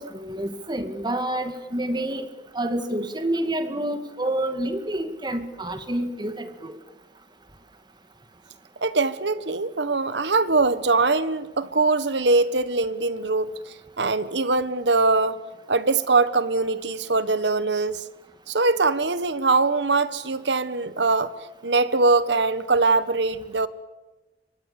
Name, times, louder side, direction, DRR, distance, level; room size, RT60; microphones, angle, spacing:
voice 1, 0.0-2.3 2.5-6.8, right 1 dB, 25° right, 8 dB, 2.2 m, -28 dB
voice 2, 8.8-13.6 14.0-15.4 15.7-18.0 18.5-21.3 21.6-23.7, right 3 dB, 80° right, 14 dB, 1.5 m, -22 dB
26.5 x 23.5 x 7.1 m, 1.1 s
head